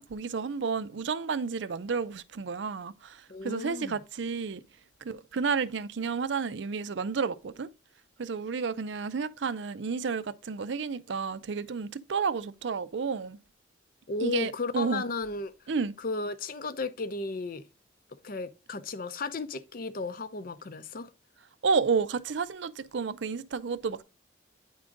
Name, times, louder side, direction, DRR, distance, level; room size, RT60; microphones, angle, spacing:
voice 1, 0.0-4.6 5.0-7.7 8.2-13.4 14.2-15.0 15.7-15.9 21.6-24.0, right 5 dB, 75° right, 0.5 m, -31 dB
voice 2, 3.3-4.0 14.1-15.5 16.0-17.6 18.2-21.1, left 3 dB, 50° left, 0.6 m, -34 dB
9.4 x 3.7 x 3.8 m
head